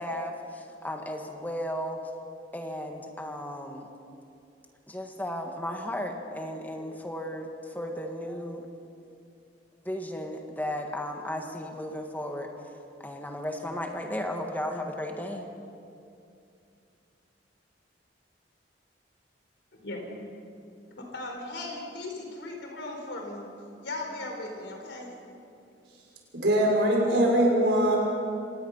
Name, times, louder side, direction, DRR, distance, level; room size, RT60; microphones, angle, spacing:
voice 1, 0.0-2.0 2.5-3.9 4.9-8.6 9.8-12.5 13.0-15.5, left 1 dB, 10° left, 3 dB, 1.7 m, -35 dB
voice 2, 19.7-20.0 21.0-23.5 23.8-25.1, left 2 dB, 80° left, 2 dB, 4.4 m, -37 dB
voice 3, 26.3-28.0, right 1 dB, 70° right, -2 dB, 6.0 m, -22 dB
26.5 x 19.0 x 5.6 m, 2.6 s
head